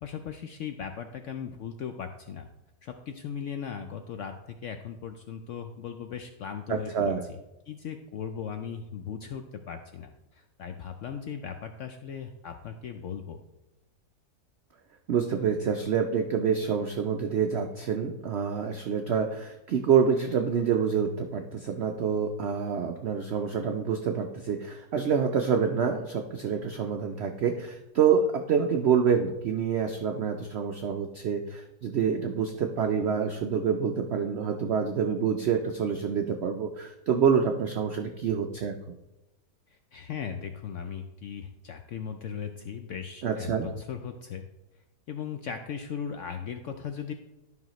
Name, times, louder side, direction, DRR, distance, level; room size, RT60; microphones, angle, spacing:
voice 1, 0.0-2.5 2.8-7.4 7.7-13.4 39.7-44.4 45.1-47.1, left 7 dB, 75° left, 6 dB, 0.7 m, -38 dB
voice 2, 6.7-7.2 15.1-38.7 43.2-43.7, right 7 dB, 85° right, 5 dB, 0.5 m, -27 dB
11.5 x 5.6 x 3.0 m, 0.96 s
omnidirectional pair, 1.8 m